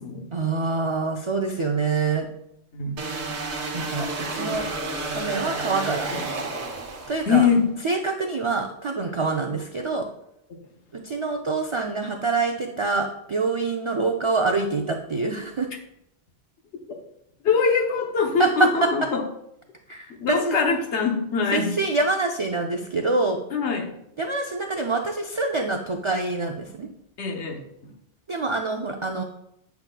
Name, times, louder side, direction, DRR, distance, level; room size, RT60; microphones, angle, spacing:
voice 1, 0.3-2.3 3.7-4.6 5.1-6.1 7.1-7.5 7.8-10.1 10.9-15.7 18.4-18.9 19.9-20.6 21.5-23.4 24.2-26.9 28.3-29.2, right 3 dB, 50° right, 3 dB, 0.3 m, -25 dB
sound 1, 3.0-7.5, right 3 dB, 85° right, 1.3 m, -31 dB
voice 2, 7.3-7.7 10.5-10.6 16.9-17.0 17.4-19.2 20.2-21.7 23.5-23.9 27.2-27.9, left 5 dB, 90° left, 2 dB, 1.2 m, -23 dB
8.0 x 5.8 x 2.2 m, 0.78 s
omnidirectional pair, 1.1 m